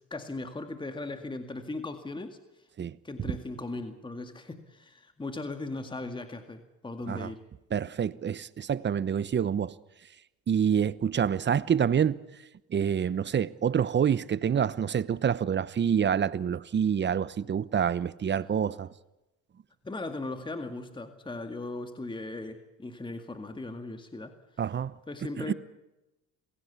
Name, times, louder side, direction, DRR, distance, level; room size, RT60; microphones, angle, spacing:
voice 1, 0.1-2.7 3.0-7.4 19.8-24.4 25.1-25.5, left 2 dB, 15° left, 2.1 m, -38 dB
voice 2, 7.7-9.7 10.5-12.2 12.7-18.9 24.6-24.9 25.4-25.5, right 8 dB, 35° right, 0.9 m, -27 dB
27.5 x 16.5 x 8.3 m
supercardioid pair, 80°, 32 cm